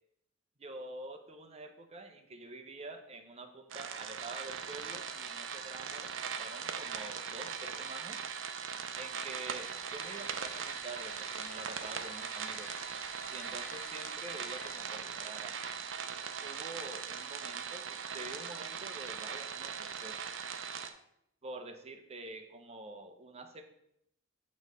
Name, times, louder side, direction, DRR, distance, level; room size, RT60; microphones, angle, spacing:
voice 1, 0.6-8.2 9.0-12.7 13.3-15.6 16.4-20.2 21.4-23.6, right 2 dB, 30° right, 6 dB, 0.7 m, -47 dB
sound 1, 3.7-20.9, right 7 dB, 70° right, 0.6 m, -40 dB
sound 2, 9.5-14.8, left 4 dB, 55° left, 1.1 m, -52 dB
8.6 x 3.1 x 5.3 m, 0.77 s
head